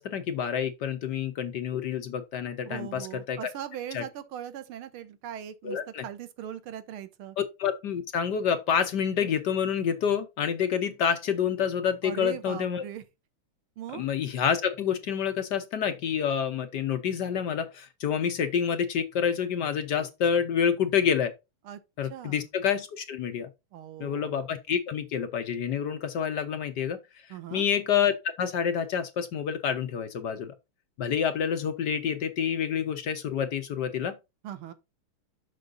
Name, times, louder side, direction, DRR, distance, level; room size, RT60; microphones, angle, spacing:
voice 1, 0.0-3.5 3.9-4.0 5.6-6.0 7.4-12.8 13.9-21.3 22.0-23.5 24.0-27.0 27.5-30.5 31.0-34.1, left 7 dB, 60° left, 1.2 m, -28 dB
voice 2, 2.7-7.4 12.0-13.0 13.8-14.1 21.7-21.8 22.1-22.5 23.7-24.4 27.3-27.7 34.4-34.7, right 10 dB, 80° right, 1.7 m, -40 dB
6.8 x 5.9 x 3.8 m
omnidirectional pair, 2.4 m